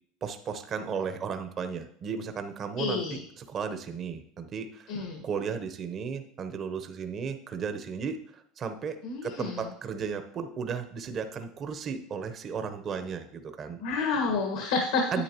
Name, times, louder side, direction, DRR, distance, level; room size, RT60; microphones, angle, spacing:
voice 1, 0.2-4.9 5.2-13.8 15.1-15.2, right 6 dB, 40° right, 8 dB, 0.9 m, -35 dB
voice 2, 2.8-3.2 4.9-5.2 9.0-9.6 13.8-15.2, left 4 dB, 75° left, 2 dB, 1.6 m, -29 dB
9.9 x 8.6 x 3.0 m, 0.66 s
supercardioid pair, 95°, 0 cm